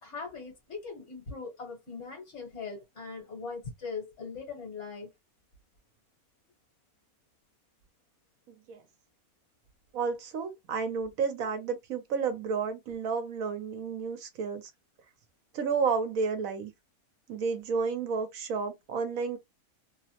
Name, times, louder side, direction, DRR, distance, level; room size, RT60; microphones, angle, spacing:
voice 1, 0.0-5.1, left 4 dB, 55° left, 1.4 m, -40 dB
voice 2, 9.9-14.6 15.5-16.7 17.3-19.4, right 5 dB, 75° right, 1.1 m, -31 dB
3.0 x 2.1 x 2.8 m
omnidirectional pair, 1.5 m